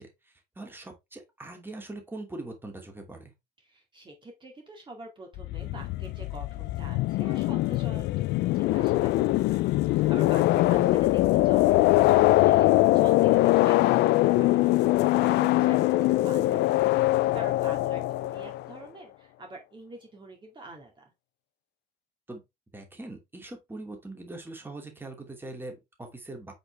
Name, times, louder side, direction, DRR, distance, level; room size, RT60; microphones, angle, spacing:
voice 1, 0.0-3.3 10.5-10.9 22.3-22.4 22.7-26.5, right 2 dB, 10° right, 2.6 m, -42 dB
voice 2, 3.6-8.2 8.5-21.0, right 2 dB, 30° right, 2.2 m, -45 dB
sound 1, 5.4-18.8, left 17 dB, 80° left, 0.5 m, -22 dB
8.0 x 5.2 x 3.4 m
cardioid pair, 110°, 17 cm